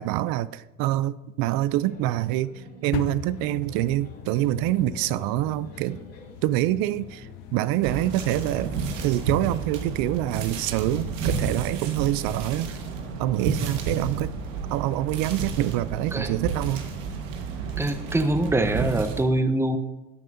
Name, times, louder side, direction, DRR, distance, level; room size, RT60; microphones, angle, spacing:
voice 1, 0.0-6.0 6.4-8.7 9.0-12.7 13.2-14.3 14.7-16.8, right 15 dB, 65° right, 17 dB, 0.5 m, -26 dB
sound 1, 1.5-14.2, left 1 dB, 45° left, 3.8 m, -49 dB
sound 2, 2.9-11.7, left 12 dB, 75° left, 0.6 m, -40 dB
sound 3, 7.8-19.2, right 5 dB, 85° right, 1.5 m, -31 dB
voice 2, 17.8-19.8, right 2 dB, 5° right, 9 dB, 0.9 m, -24 dB
14.0 x 9.0 x 2.7 m, 1.1 s
hypercardioid pair, 75°, 38 cm